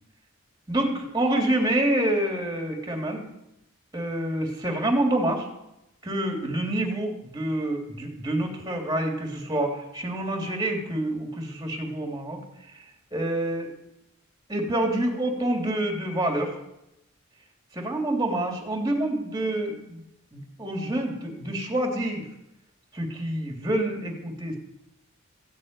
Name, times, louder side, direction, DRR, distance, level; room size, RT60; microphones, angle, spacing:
voice 1, 0.7-3.2 3.9-5.5 6.0-12.4 12.7-12.8 13.1-13.7 14.5-16.5 17.7-20.0 20.3-22.3 22.9-24.6, right 1 dB, 15° right, 2 dB, 3.0 m, -27 dB
15.5 x 8.6 x 9.5 m, 0.85 s
head